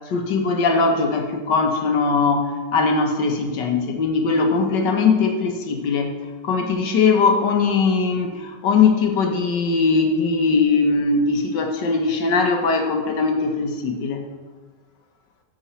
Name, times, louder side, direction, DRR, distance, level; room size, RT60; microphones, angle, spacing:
voice 1, 0.1-6.2 6.4-14.2, left 4 dB, 85° left, 4 dB, 1.8 m, -20 dB
13.5 x 6.2 x 4.4 m, 1.4 s
omnidirectional pair, 1.9 m